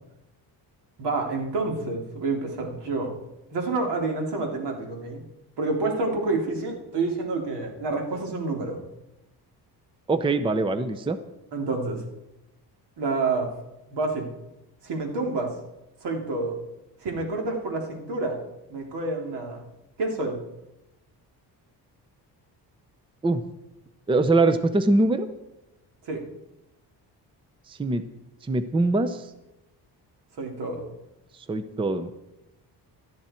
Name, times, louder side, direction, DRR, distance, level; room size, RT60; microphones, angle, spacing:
voice 1, 1.0-3.2 3.5-5.2 5.6-8.8 11.5-12.0 13.0-13.5 13.9-14.3 14.8-15.5 16.0-16.6 17.0-18.4 18.7-19.6 20.0-20.4 26.0-26.2 30.4-30.8, right 3 dB, 75° right, 2 dB, 3.3 m, -28 dB
voice 2, 10.1-11.2 23.2-23.4 24.1-25.3 27.7-28.0 28.4-29.3 31.3-32.1, right 2 dB, 10° right, 11 dB, 0.6 m, -23 dB
18.0 x 13.0 x 4.4 m, 0.92 s
cardioid pair, 155°, 41 cm